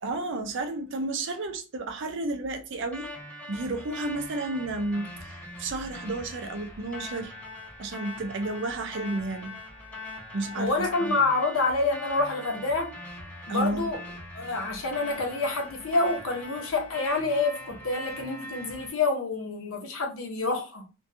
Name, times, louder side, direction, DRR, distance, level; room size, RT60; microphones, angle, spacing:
voice 1, 0.0-3.1 3.5-7.3 7.8-9.6 10.3-11.1 13.5-13.9, right 2 dB, 60° right, 0.5 m, -32 dB
sound 1, 2.9-18.9, left 1 dB, 5° left, 1.1 m, -42 dB
voice 2, 10.6-12.9 13.5-14.0 14.3-20.8, left 3 dB, 85° left, 0.8 m, -27 dB
2.6 x 2.2 x 2.6 m
head